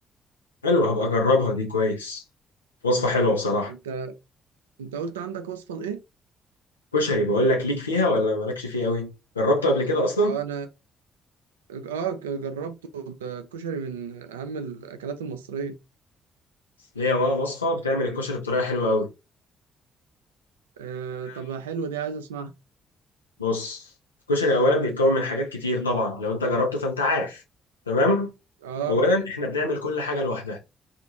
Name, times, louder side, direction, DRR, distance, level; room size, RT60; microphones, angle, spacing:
voice 1, 0.6-2.2 2.8-3.7 6.9-10.4 16.9-19.1 21.2-21.4 23.4-23.9 24.3-27.4 27.9-28.3 28.9-30.6, left 1 dB, 85° left, 0.7 m, -23 dB
voice 2, 3.7-4.1 4.8-6.0 10.2-10.7 11.7-15.8 20.8-22.5 28.6-29.0, right 6 dB, 80° right, 0.3 m, -33 dB
2.4 x 2.4 x 2.9 m
figure-of-eight pair, 40°, 0 cm